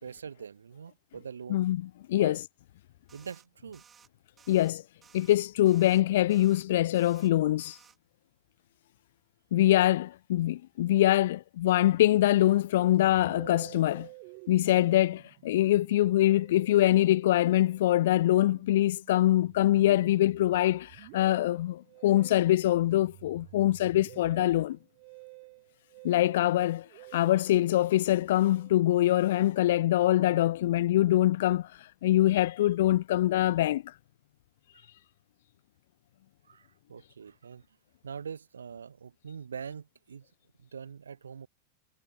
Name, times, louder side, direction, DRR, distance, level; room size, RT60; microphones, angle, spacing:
voice 1, 0.0-1.7 2.2-2.4 3.1-3.8 14.6-14.7 34.7-34.9 36.4-37.6 38.0-40.3 40.6-41.5, right 6 dB, 70° right, 5.6 m, -43 dB
voice 2, 2.1-2.4 4.5-4.8 5.1-7.8 9.5-14.1 14.5-24.8 26.0-26.9 27.1-33.9, left 14 dB, 55° left, 0.4 m, -24 dB
sound 1, 3.1-3.5 3.7-4.1 4.4-4.7 5.0-5.4 5.7-6.0 6.3-6.7 6.9-7.3 7.6-8.0, right 7 dB, 20° right, 7.7 m, -58 dB
Musical instrument, 13.0-30.6, right 34 dB, 45° right, 2.3 m, -52 dB
figure-of-eight pair, 90°, 0 cm